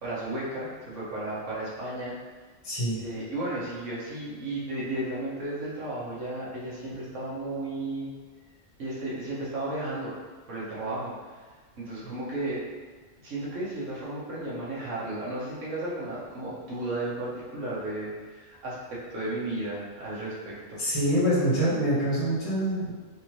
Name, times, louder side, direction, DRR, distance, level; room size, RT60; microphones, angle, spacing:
voice 1, 0.0-2.1 3.0-8.1 8.8-10.1 10.5-11.4 11.8-12.6 13.2-20.8, right 2 dB, 65° right, -7 dB, 1.4 m, -34 dB
voice 2, 2.6-3.0 20.8-22.9, equal, 25° left, -10 dB, 1.4 m, -25 dB
4.1 x 2.7 x 3.1 m, 1.5 s
omnidirectional pair, 1.4 m